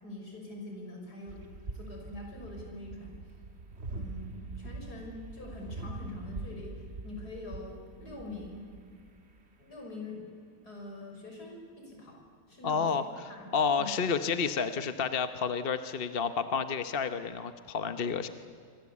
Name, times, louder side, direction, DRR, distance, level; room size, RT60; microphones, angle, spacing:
voice 1, 0.0-1.4 1.7-3.1 3.9-8.7 9.6-10.2 10.6-12.2 12.5-13.0 13.3-13.9, left 2 dB, 55° left, 0 dB, 6.7 m, -44 dB
sound 1, 1.3-9.4, right 3 dB, 35° right, 1.8 m, -43 dB
voice 2, 12.6-13.0 13.5-18.3, left 6 dB, 40° left, 10 dB, 0.9 m, -30 dB
27.0 x 24.5 x 8.5 m, 2.2 s
omnidirectional pair, 2.0 m